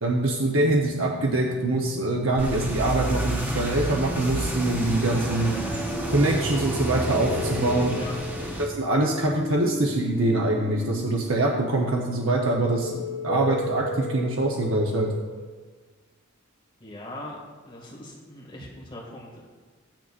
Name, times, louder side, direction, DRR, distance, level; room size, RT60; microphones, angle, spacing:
voice 1, 0.0-5.5 6.1-7.9 8.6-15.1, right 2 dB, 70° right, -1 dB, 1.0 m, -24 dB
sound 1, 0.6-15.5, equal, 65° left, 1.5 m, -35 dB
sound 2, 2.4-8.7, right 1 dB, 10° right, 1.1 m, -30 dB
voice 2, 16.8-17.4 17.7-19.4, left 1 dB, 25° left, -3 dB, 2.0 m, -40 dB
15.0 x 9.1 x 2.5 m, 1.4 s
head